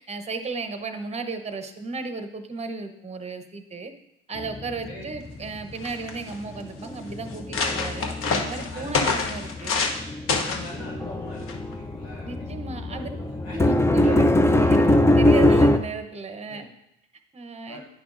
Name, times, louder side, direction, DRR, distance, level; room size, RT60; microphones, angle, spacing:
voice 1, 0.0-3.9 4.3-9.8 12.2-13.1 13.5-16.7 17.3-17.8, right 4 dB, 20° right, 8 dB, 0.9 m, -34 dB
sound 1, 4.4-6.1 6.3-15.8, left 1 dB, 10° left, 0.4 m, -23 dB
sound 2, 5.4-5.5 5.7-6.3 6.9-7.0 7.3-10.0 10.3-10.7 11.5-11.7, left 4 dB, 45° left, 1.0 m, -27 dB
voice 2, 10.4-12.5 12.9-13.6 14.0-14.3 16.4-16.6 17.7-17.9, left 1 dB, 90° left, -3 dB, 2.4 m, -42 dB
10.0 x 5.8 x 2.6 m, 0.83 s
hypercardioid pair, 75°, 31 cm